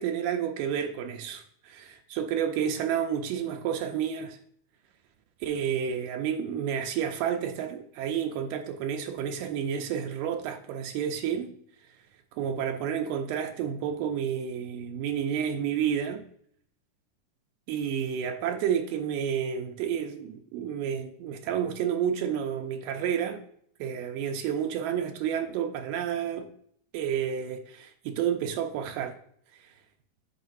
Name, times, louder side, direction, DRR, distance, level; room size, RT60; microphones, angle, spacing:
voice 1, 0.0-4.4 5.4-11.5 12.3-16.2 17.7-23.4 23.8-26.5 26.9-29.1 29.6-29.7, right 8 dB, 80° right, 2.2 m, -30 dB
9.1 x 6.0 x 2.6 m
omnidirectional pair, 4.0 m